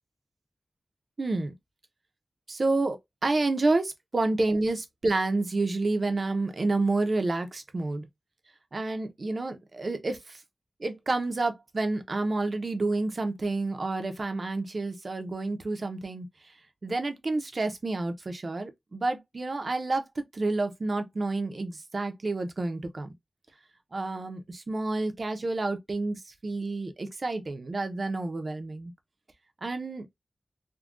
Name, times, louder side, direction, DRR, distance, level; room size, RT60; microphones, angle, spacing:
voice 1, 1.2-1.5 2.5-3.8 4.1-8.1 8.7-10.4 10.8-16.3 16.8-23.1 23.9-28.9 29.6-30.1, right 2 dB, 55° right, 0.6 m, -29 dB
3.6 x 2.2 x 2.4 m
wide cardioid pair, 95°, 0 cm